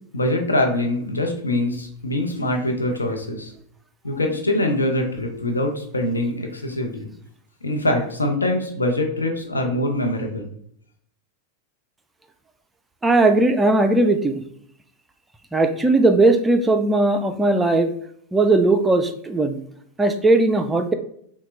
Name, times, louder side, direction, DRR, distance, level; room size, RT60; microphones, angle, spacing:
voice 1, 0.1-3.5 4.0-7.1 7.6-10.5, left 1 dB, 80° left, 3 dB, 0.8 m, -23 dB
voice 2, 13.0-14.4 15.5-17.9 18.3-19.6 20.0-20.9, right 2 dB, 10° right, 7 dB, 0.4 m, -18 dB
5.7 x 2.3 x 3.2 m, 0.67 s
figure-of-eight pair, 90°, 0 cm